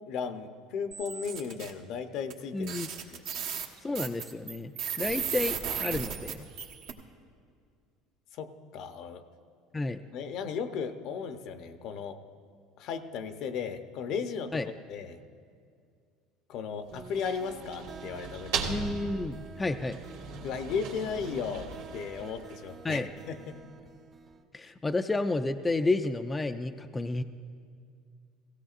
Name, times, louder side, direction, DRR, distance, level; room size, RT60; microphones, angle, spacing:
voice 1, 0.0-2.7 3.1-3.2 8.3-9.2 10.1-12.2 12.8-14.6 14.9-15.2 16.5-18.8 20.4-23.5 24.6-24.7, left 6 dB, 60° left, 8 dB, 0.8 m, -36 dB
sound 1, 0.9-1.7 2.3-2.4 2.6-6.9, right 8 dB, 70° right, 1.3 m, -35 dB
voice 2, 2.5-2.9 3.8-4.7 5.0-6.5 9.7-10.0 14.5-14.7 18.7-20.0 22.8-23.1 24.5-27.2, left 2 dB, 15° left, 7 dB, 0.4 m, -31 dB
sound 2, 16.8-22.9, right 5 dB, 85° right, 1.5 m, -39 dB
sound 3, 16.9-24.5, right 4 dB, 30° right, 0.8 m, -48 dB
17.0 x 16.5 x 2.5 m, 2.2 s
supercardioid pair, 95°, 0 cm